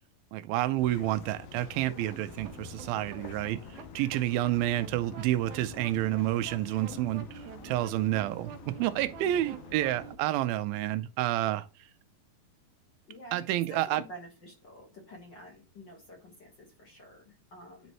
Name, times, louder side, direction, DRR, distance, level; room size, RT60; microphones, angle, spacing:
voice 1, 0.3-3.6 4.0-11.7 13.3-14.0, right 14 dB, 90° right, 2.4 m, -29 dB
sound 1, 0.8-10.1, left 6 dB, 65° left, 2.0 m, -48 dB
sound 2, 2.4-10.2, right 7 dB, 75° right, 2.0 m, -48 dB
voice 2, 4.3-4.7 9.2-9.5 13.1-17.9, equal, 45° left, 1.6 m, -49 dB
10.5 x 4.1 x 3.1 m
omnidirectional pair, 4.1 m